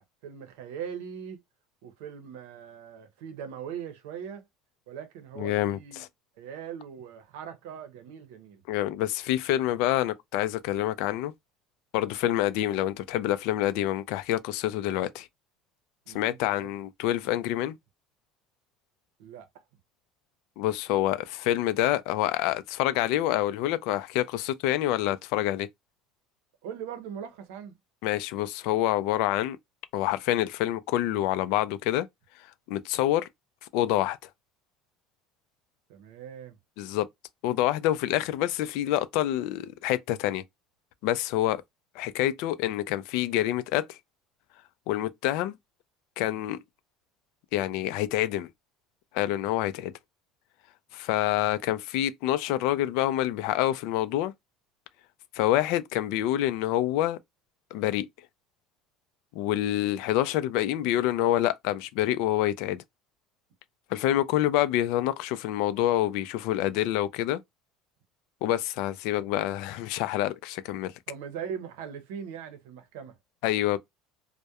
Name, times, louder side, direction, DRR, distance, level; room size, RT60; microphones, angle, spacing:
voice 1, 0.0-1.4 1.8-4.4 4.9-6.0 6.4-8.6 16.1-16.7 19.2-19.6 26.6-27.7 35.9-36.6 51.4-51.7 71.1-73.2, right 8 dB, 90° right, 0.7 m, -40 dB
voice 2, 5.4-6.1 8.7-11.3 11.9-15.3 16.1-17.7 20.6-25.7 28.0-29.6 29.9-32.1 32.7-33.3 33.7-34.2 36.8-37.1 37.4-40.4 41.0-41.6 42.0-44.0 44.9-45.6 46.2-46.6 47.5-48.5 49.1-49.9 50.9-54.3 55.3-57.2 57.7-58.1 59.3-62.8 63.9-67.4 68.4-70.9 73.4-73.8, left 13 dB, 65° left, 0.3 m, -27 dB
2.3 x 2.1 x 2.8 m
cardioid pair, 155°, 0 cm